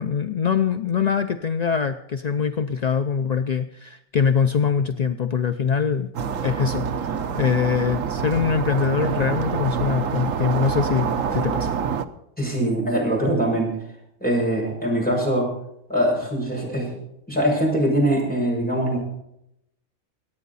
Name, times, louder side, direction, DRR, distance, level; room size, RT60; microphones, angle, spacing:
voice 1, 0.0-6.1 6.4-11.7, left 6 dB, 55° left, 8 dB, 0.5 m, -23 dB
sound 1, 6.1-12.0, right 6 dB, 75° right, 1.2 m, -26 dB
voice 2, 12.4-13.7 14.2-15.5 15.9-16.9 17.3-19.0, right 1 dB, 5° left, -3 dB, 6.2 m, -22 dB
24.5 x 9.3 x 4.1 m, 0.78 s
omnidirectional pair, 1.4 m